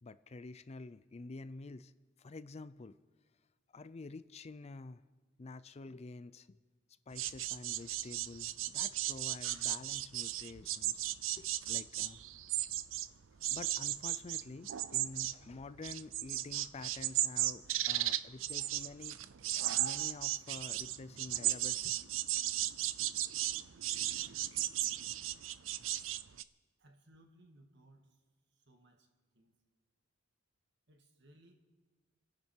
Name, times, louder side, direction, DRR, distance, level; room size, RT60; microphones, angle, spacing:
voice 1, 0.0-1.9 2.2-3.0 3.7-5.0 5.4-6.6 7.1-11.0 11.3-12.2 13.5-19.2 19.8-22.0, left 3 dB, 35° left, 15 dB, 0.4 m, -48 dB
sound 1, 7.1-13.1 13.4-26.4, right 13 dB, 85° right, 0.5 m, -35 dB
voice 2, 26.8-28.1 28.7-29.1 29.3-29.5 30.9-31.5, right 1 dB, 60° right, 3 dB, 2.1 m, -63 dB
29.5 x 10.5 x 4.5 m, 1.3 s
head